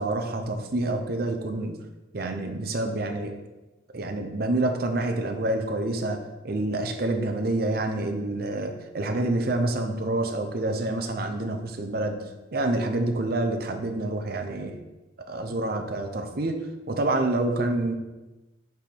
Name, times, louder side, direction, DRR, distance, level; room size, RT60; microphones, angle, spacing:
voice 1, 0.0-1.8 2.1-3.4 3.9-12.2 12.5-14.8 15.3-16.6 16.9-17.9, right 2 dB, 50° right, 6 dB, 0.6 m, -27 dB
4.8 x 4.6 x 5.3 m, 1.1 s
head